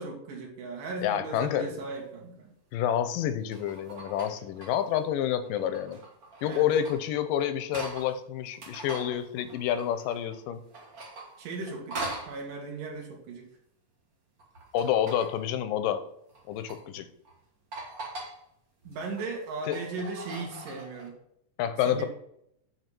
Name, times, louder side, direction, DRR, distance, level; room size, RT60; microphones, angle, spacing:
voice 1, 0.0-2.5 6.4-6.7 11.4-13.5 18.8-21.2 21.9-22.1, right 3 dB, 85° right, 0 dB, 3.2 m, -37 dB
voice 2, 1.0-1.8 2.7-6.0 6.4-10.6 14.7-16.0 16.5-17.1 19.7-19.8 21.6-22.1, left 10 dB, 90° left, 11 dB, 2.5 m, -28 dB
sound 1, 1.8-1.9 3.2-5.0 5.4-8.1 8.5-10.4 10.7-12.4 14.4-15.4 16.3-16.8 17.2-17.4 17.7-18.4 18.8-21.1, right 2 dB, 40° right, 1.4 m, -42 dB
7.9 x 5.1 x 6.0 m, 0.75 s
omnidirectional pair, 3.8 m